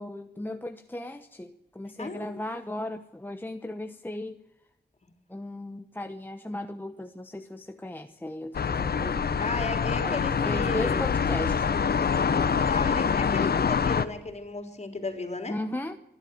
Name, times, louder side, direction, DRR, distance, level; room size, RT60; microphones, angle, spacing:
voice 1, 0.0-4.4 5.3-9.3 10.0-11.8 15.5-16.0, left 1 dB, 10° left, 1.0 m, -36 dB
voice 2, 2.0-2.4 9.4-11.0 12.3-15.6, left 3 dB, 40° left, 3.7 m, -35 dB
sound 1, 8.5-14.1, left 6 dB, 65° left, 1.0 m, -25 dB
23.5 x 12.0 x 9.3 m
wide cardioid pair, 95°, 17 cm